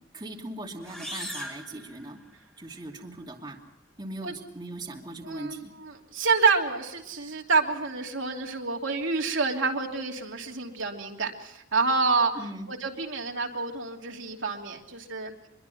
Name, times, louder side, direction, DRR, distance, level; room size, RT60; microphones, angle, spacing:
voice 1, 0.1-2.2 2.6-3.6 4.0-5.7 12.3-12.7, right 2 dB, 20° right, 0 dB, 2.7 m, -39 dB
sound 1, 0.8-2.6, equal, 5° left, 4.1 m, -40 dB
voice 2, 5.2-12.3 12.7-15.3, right 4 dB, 70° right, 1 dB, 2.9 m, -28 dB
25.5 x 22.5 x 5.7 m, 0.84 s
head